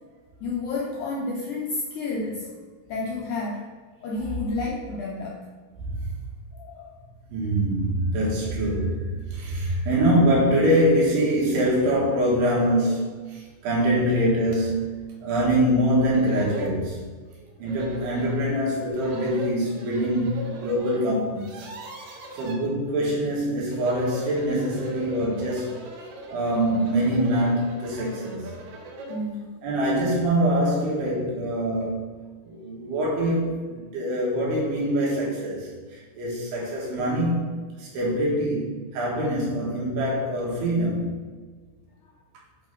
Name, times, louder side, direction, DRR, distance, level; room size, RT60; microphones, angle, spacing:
voice 1, 0.4-2.6 2.9-3.7 4.0-5.5 6.5-7.0 29.1-29.5, left 3 dB, 85° left, -3 dB, 1.7 m, -31 dB
voice 2, 7.3-17.2 17.6-21.6 22.3-25.8 26.3-28.5 29.6-37.5 37.8-41.1, equal, 85° right, -5 dB, 3.7 m, -24 dB
sound 1, 14.5-14.6 15.1-15.2 15.8-15.9 16.1-16.8 17.7-18.4 18.9-21.0 21.3-22.6 23.6-29.3, right 2 dB, 70° right, 2.3 m, -40 dB
8.1 x 3.3 x 5.3 m, 1.5 s
omnidirectional pair, 4.6 m